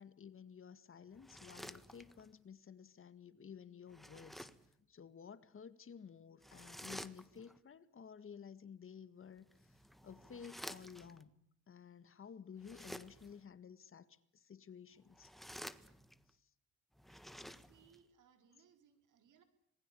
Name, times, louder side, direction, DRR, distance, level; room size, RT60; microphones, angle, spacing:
voice 1, 0.0-4.5 4.8-9.8 10.0-11.4 11.7-15.3 16.3-16.5, left 7 dB, 45° left, 13 dB, 1.9 m, -54 dB
sound 1, 1.1-2.4 3.9-4.7 6.4-7.6 9.4-11.2 12.6-13.4 15.0-16.3 16.9-18.0, equal, ahead, 1.4 m, -52 dB
voice 2, 17.0-19.4, right 7 dB, 80° right, 7 dB, 4.7 m, -69 dB
26.5 x 20.5 x 8.5 m, 0.75 s
cardioid pair, 90°, 30 cm